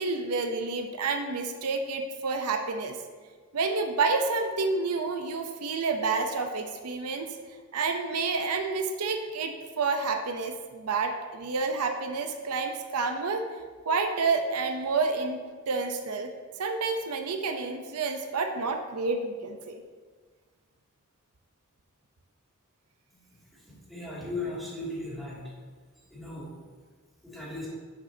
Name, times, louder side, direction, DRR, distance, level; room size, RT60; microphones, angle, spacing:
voice 1, 0.0-3.0 3.5-7.3 7.7-13.5 13.9-15.4 15.7-16.3 16.6-19.8, right 4 dB, 85° right, 5 dB, 0.7 m, -29 dB
voice 2, 23.9-25.4 26.1-26.5 27.2-27.7, left 2 dB, ahead, -8 dB, 2.5 m, -36 dB
10.0 x 6.8 x 2.8 m, 1.5 s
head